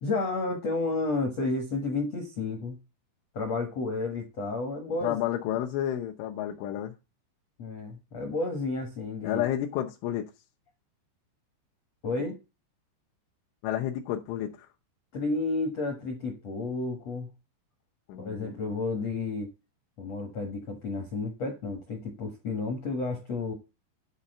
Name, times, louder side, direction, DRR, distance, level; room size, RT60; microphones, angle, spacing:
voice 1, 0.0-2.8 3.3-5.2 7.6-9.5 12.0-12.4 15.1-17.3 18.2-19.5 20.0-23.5, left 3 dB, 70° left, 1.5 m, -31 dB
voice 2, 5.0-6.9 9.2-10.3 13.6-14.7 18.1-18.6, left 12 dB, 85° left, 3.3 m, -31 dB
10.0 x 4.1 x 5.4 m
omnidirectional pair, 5.3 m